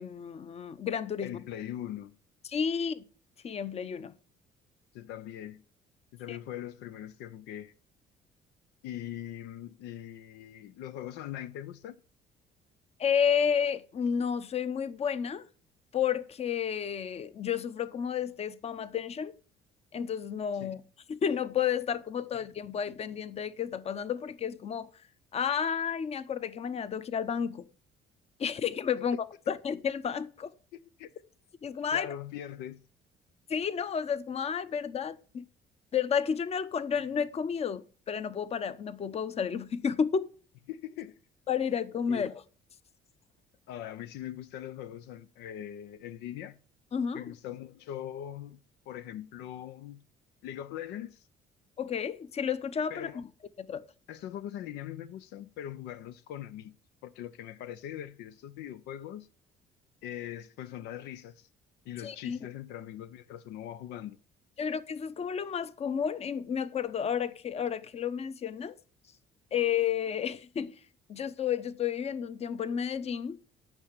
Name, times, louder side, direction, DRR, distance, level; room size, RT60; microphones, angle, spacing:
voice 1, 0.0-1.4 2.4-3.0 3.4-4.1 6.3-6.4 13.0-15.5 15.9-19.4 19.9-20.8 21.1-24.9 25.3-27.6 28.4-29.2 29.5-30.5 31.6-32.1 33.5-35.4 35.9-40.3 41.5-42.3 46.9-47.3 51.8-53.2 53.6-53.8 62.0-62.4 64.6-68.8 69.5-70.8 71.1-73.4, left 7 dB, 40° left, 0.8 m, -31 dB
voice 2, 1.2-2.2 4.9-5.6 6.1-7.7 8.8-12.0 20.6-20.8 30.7-31.1 31.9-32.8 40.7-41.2 42.1-42.3 43.7-46.6 47.1-48.6 48.9-50.0 50.4-51.3 52.9-53.2 54.1-56.7 57.0-59.3 60.0-61.5 61.8-64.2, left 11 dB, 90° left, 0.6 m, -41 dB
9.0 x 5.9 x 8.2 m
cardioid pair, 110°, 17 cm